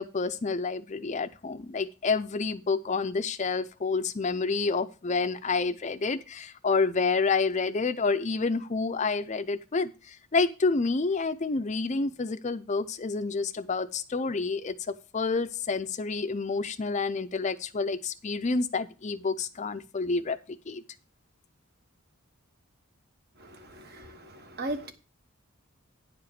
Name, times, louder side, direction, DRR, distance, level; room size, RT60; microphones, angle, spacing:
voice 1, 0.0-14.7 15.1-20.4 20.7-20.8, left 4 dB, 35° left, 0.5 m, -29 dB
voice 2, 23.4-24.9, right 1 dB, 50° right, 1.2 m, -38 dB
10.0 x 4.9 x 6.7 m
head